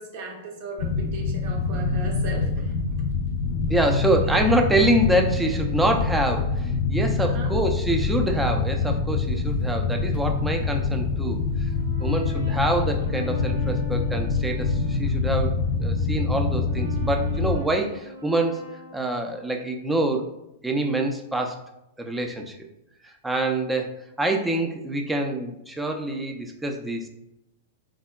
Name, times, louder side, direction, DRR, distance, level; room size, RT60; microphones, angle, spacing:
voice 1, 0.0-2.7 7.2-7.5, right 2 dB, 55° right, 1 dB, 0.7 m, -37 dB
sound 1, 0.8-17.6, left 4 dB, 55° left, 0.5 m, -25 dB
voice 2, 3.7-11.4 12.0-15.5 15.8-18.6 18.9-20.3 20.6-21.6 22.0-22.6 23.0-27.1, right 1 dB, 10° right, 3 dB, 0.4 m, -25 dB
Brass instrument, 11.1-15.1 15.6-19.7, left 4 dB, 80° right, 1.3 m, -41 dB
3.6 x 2.0 x 2.3 m, 0.86 s
hypercardioid pair, 110°, 0 cm